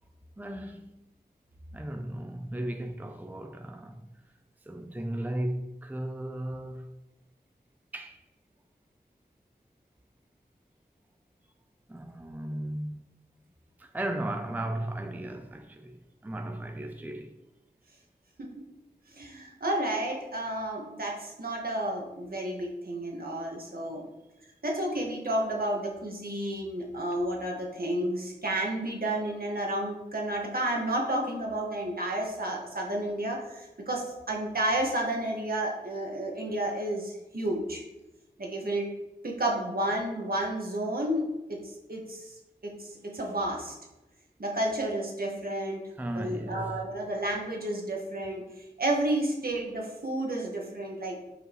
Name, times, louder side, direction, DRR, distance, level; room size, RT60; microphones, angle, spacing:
voice 1, 0.4-1.0 1.7-4.0 4.7-6.9 7.9-8.2 11.9-13.0 13.8-16.0 16.2-17.3 46.0-46.7, right 1 dB, 10° right, 0.5 m, -35 dB
voice 2, 19.1-24.0 24.6-37.8 38.4-38.9 39.2-41.6 41.9-42.4 42.8-43.7 44.4-45.8 46.1-51.2, right 1 dB, 65° right, 1.7 m, -31 dB
7.7 x 4.9 x 3.1 m
wide cardioid pair, 50°, 16 cm